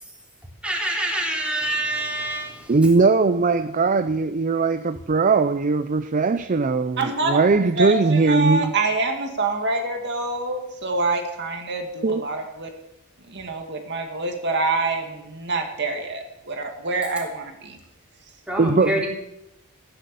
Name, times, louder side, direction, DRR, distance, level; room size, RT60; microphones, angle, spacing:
voice 1, 0.6-2.8 18.5-19.1, right 1 dB, 5° right, -2 dB, 3.5 m, -26 dB
voice 2, 2.7-8.7 12.0-12.2 18.6-18.9, right 4 dB, 35° right, 12 dB, 0.5 m, -20 dB
voice 3, 7.0-12.7 13.3-17.8, right 3 dB, 50° right, 3 dB, 2.1 m, -26 dB
15.0 x 10.5 x 6.9 m, 0.86 s
head